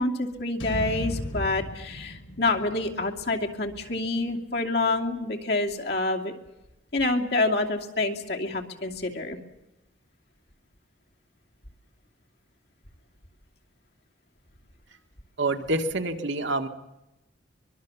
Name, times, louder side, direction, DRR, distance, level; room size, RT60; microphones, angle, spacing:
voice 1, 0.0-6.3 6.9-9.4, left 2 dB, 60° left, 2 dB, 2.7 m, -27 dB
sound 1, 0.6-4.8, equal, 85° left, 3.5 m, -37 dB
voice 2, 15.4-16.7, right 2 dB, 75° right, 6 dB, 1.9 m, -27 dB
24.0 x 22.5 x 7.2 m, 0.93 s
head